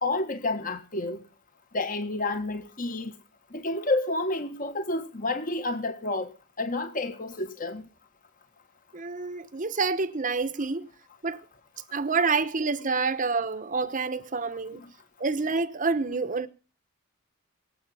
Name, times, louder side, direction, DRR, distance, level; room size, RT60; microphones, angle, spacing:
voice 1, 0.0-1.2 1.7-3.1 3.5-7.8 14.8-14.9, left 2 dB, 40° left, 1.6 m, -30 dB
voice 2, 8.9-10.9 11.2-11.4 11.9-14.8 15.2-16.5, right 4 dB, 40° right, 0.9 m, -28 dB
23.0 x 7.9 x 5.5 m
head